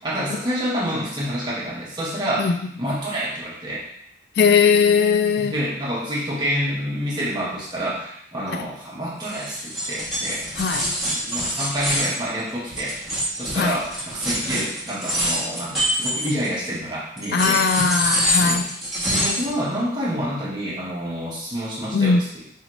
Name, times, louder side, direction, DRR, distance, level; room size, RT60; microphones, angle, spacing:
voice 1, 0.0-2.5 2.8-3.8 5.4-10.5 11.0-13.0 13.4-17.6 18.4-18.6 19.0-22.4, equal, 25° right, -7 dB, 1.1 m, -28 dB
voice 2, 4.4-5.5 8.5-8.6 10.6-10.9 13.5-13.8 17.3-18.7 21.9-22.3, left 5 dB, 60° left, 8 dB, 0.3 m, -19 dB
sound 1, 9.2-16.7 17.2-19.5, equal, ahead, 1.5 m, -25 dB
3.6 x 3.0 x 3.0 m, 0.66 s
head